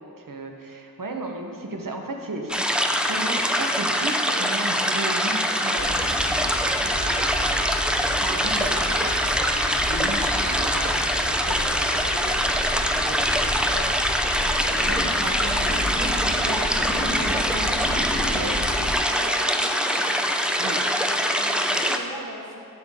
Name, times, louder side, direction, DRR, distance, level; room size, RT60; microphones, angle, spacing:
voice 1, 0.0-18.6 20.6-20.8, right 2 dB, 65° right, 3 dB, 1.0 m, -36 dB
sound 1, 2.5-22.0, equal, 5° right, 0.5 m, -24 dB
sound 2, 5.8-18.9, left 1 dB, 50° left, 1.5 m, -32 dB
voice 2, 19.1-20.2 20.8-22.5, right 1 dB, 85° right, -5 dB, 1.9 m, -39 dB
11.5 x 6.5 x 3.6 m, 2.5 s
wide cardioid pair, 45°, 36 cm